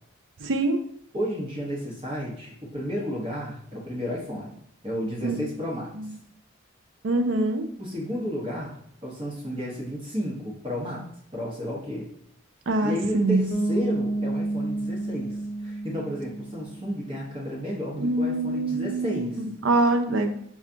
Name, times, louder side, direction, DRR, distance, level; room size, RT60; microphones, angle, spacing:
voice 1, 0.4-0.8 5.2-5.4 6.0-6.1 7.0-7.7 12.7-13.4 18.0-20.3, right 2 dB, 70° right, 7 dB, 0.5 m, -24 dB
voice 2, 1.1-4.6 4.8-6.1 7.8-11.1 11.3-12.1 12.8-19.4, equal, 25° right, -4 dB, 0.8 m, -32 dB
Bass guitar, 13.5-17.2, right 2 dB, 5° right, 0.5 m, -30 dB
5.5 x 2.4 x 2.5 m, 0.68 s
head